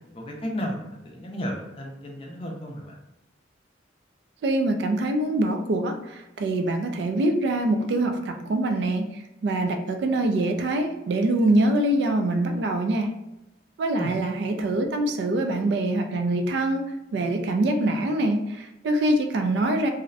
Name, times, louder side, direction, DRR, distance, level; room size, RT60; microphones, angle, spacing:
voice 1, 0.1-3.0 14.0-14.2, equal, 30° left, 0 dB, 0.4 m, -33 dB
voice 2, 4.4-5.9 6.4-9.1 9.4-13.1 13.8-19.9, right 1 dB, 65° right, 5 dB, 0.3 m, -24 dB
2.5 x 2.0 x 2.5 m, 0.93 s
head